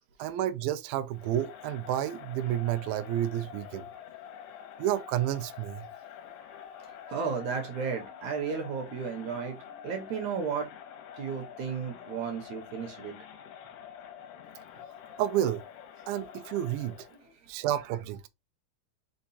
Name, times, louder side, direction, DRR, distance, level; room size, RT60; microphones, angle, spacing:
voice 1, 0.2-3.9 4.8-5.9 15.2-15.6 16.1-17.0 17.5-18.3, right 12 dB, 85° right, 1.8 m, -30 dB
Crowd, 1.1-17.3, left 9 dB, 75° left, 2.4 m, -47 dB
voice 2, 7.1-10.7 11.2-13.1, right 6 dB, 65° right, 2.1 m, -34 dB
5.6 x 2.3 x 4.0 m
omnidirectional pair, 4.0 m